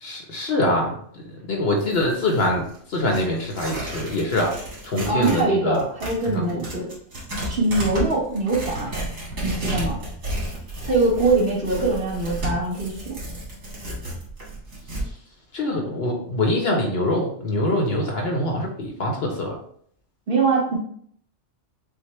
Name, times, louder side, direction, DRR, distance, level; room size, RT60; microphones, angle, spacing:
voice 1, 0.0-4.5 4.8-5.8 6.3-6.6 15.5-19.6, left 1 dB, 55° left, 0 dB, 1.0 m, -24 dB
Tearing, 1.8-5.5 5.7-15.1, equal, 75° right, 2.0 m, -32 dB
voice 2, 5.1-6.9 7.4-8.9 9.4-10.0 10.9-13.2 20.3-20.8, right 3 dB, 50° right, -4 dB, 1.3 m, -22 dB
6.3 x 2.1 x 3.2 m, 0.64 s
omnidirectional pair, 1.3 m